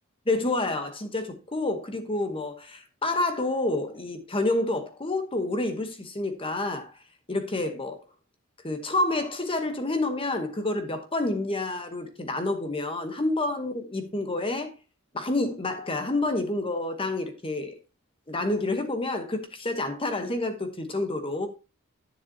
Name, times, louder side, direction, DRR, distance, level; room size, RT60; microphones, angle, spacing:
voice 1, 0.3-7.0 7.3-8.0 8.6-14.7 15.1-17.8 18.3-21.5, left 2 dB, 25° left, 1.0 m, -28 dB
10.5 x 7.1 x 2.8 m
head